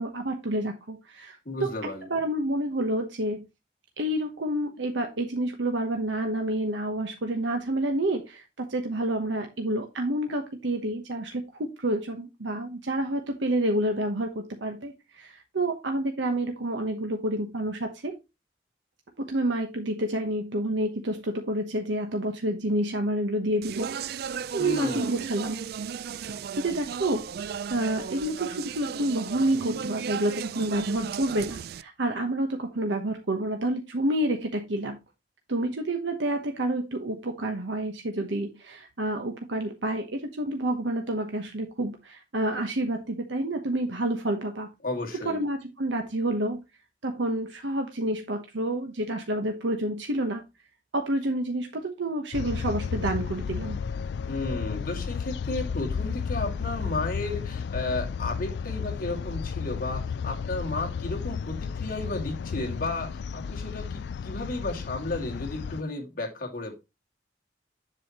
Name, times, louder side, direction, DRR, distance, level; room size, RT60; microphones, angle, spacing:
voice 1, 0.0-1.7 2.1-3.4 4.0-18.1 19.3-24.2 24.5-25.6 26.6-27.3 27.7-35.0 35.5-44.7 45.2-46.6 47.0-50.4 50.9-53.8, right 1 dB, 85° right, 4 dB, 1.1 m, -29 dB
voice 2, 1.5-2.1 24.6-25.3 44.8-45.4 54.3-66.7, left 2 dB, 50° left, 1 dB, 2.3 m, -33 dB
Speech, 23.6-31.8, right 7 dB, 55° right, 0.3 m, -35 dB
sound 1, 52.3-65.8, left 6 dB, 65° left, 0.3 m, -33 dB
7.6 x 7.2 x 3.0 m, 0.24 s
head